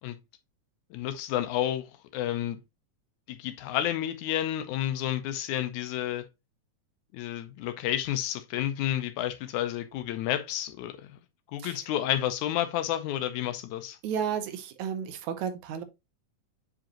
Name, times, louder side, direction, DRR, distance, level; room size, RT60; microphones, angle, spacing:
voice 1, 0.9-1.9 2.1-2.6 3.3-6.2 7.1-11.2 11.5-14.0, left 12 dB, 85° left, 2.0 m, -30 dB
voice 2, 14.0-15.8, right 8 dB, 80° right, 2.2 m, -32 dB
7.5 x 5.1 x 2.9 m
omnidirectional pair, 3.3 m